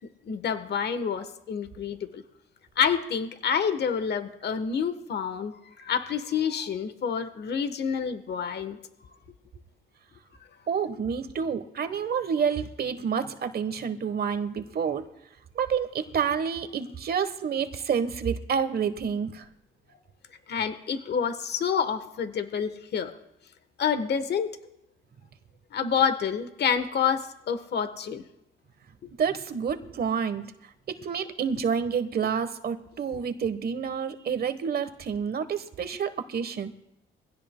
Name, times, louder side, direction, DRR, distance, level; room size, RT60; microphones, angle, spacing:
voice 1, 0.3-2.2 2.8-8.8 20.5-23.1 23.8-24.5 25.7-28.2 29.0-29.1, left 7 dB, 60° left, 10 dB, 1.1 m, -28 dB
voice 2, 10.7-15.0 15.5-19.4 29.2-30.5 30.9-36.7, right 7 dB, 50° right, 11 dB, 1.1 m, -29 dB
23.0 x 16.0 x 2.2 m, 0.83 s
cardioid pair, 90°, 20 cm